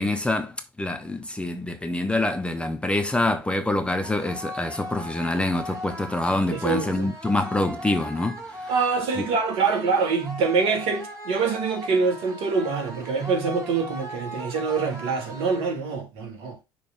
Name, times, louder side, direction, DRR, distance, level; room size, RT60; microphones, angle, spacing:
voice 1, 0.0-8.7 9.2-9.3, left 2 dB, 10° left, 0.7 m, -26 dB
sound 1, 4.0-16.0, equal, 25° right, 2.3 m, -38 dB
voice 2, 6.5-7.1 8.7-16.6, right 5 dB, 55° right, 1.7 m, -25 dB
6.0 x 3.4 x 5.1 m
figure-of-eight pair, 60°, 12 cm